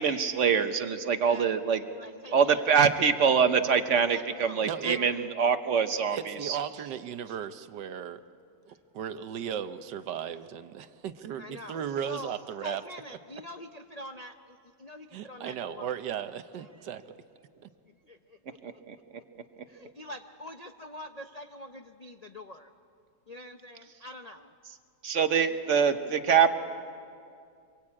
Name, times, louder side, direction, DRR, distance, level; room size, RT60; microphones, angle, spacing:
voice 1, 0.0-1.8 2.3-6.2 6.4-6.6 18.6-18.9 25.0-26.5, right 6 dB, 50° right, 9 dB, 1.2 m, -24 dB
voice 2, 1.2-2.7 4.1-5.2 11.4-12.3 12.6-14.3 14.8-15.9 18.1-18.2 18.5-18.6 19.7-22.7 23.3-24.5 25.5-25.6, left 1 dB, 50° left, 6 dB, 0.4 m, -44 dB
voice 3, 4.6-5.0 6.1-8.2 8.7-12.8 13.1-13.2 15.1-17.0, right 9 dB, 80° right, 11 dB, 1.5 m, -36 dB
26.0 x 22.5 x 8.6 m, 2.4 s
omnidirectional pair, 1.9 m